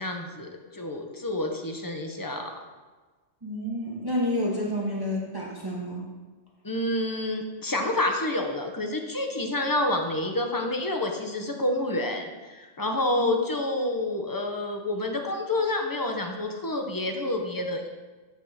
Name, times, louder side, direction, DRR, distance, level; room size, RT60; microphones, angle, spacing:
voice 1, 0.0-2.6 6.6-17.9, left 1 dB, 20° left, 3 dB, 0.6 m, -28 dB
voice 2, 3.4-6.1 13.1-13.3, left 1 dB, 20° right, -4 dB, 1.0 m, -29 dB
9.0 x 3.6 x 5.6 m, 1.3 s
omnidirectional pair, 1.2 m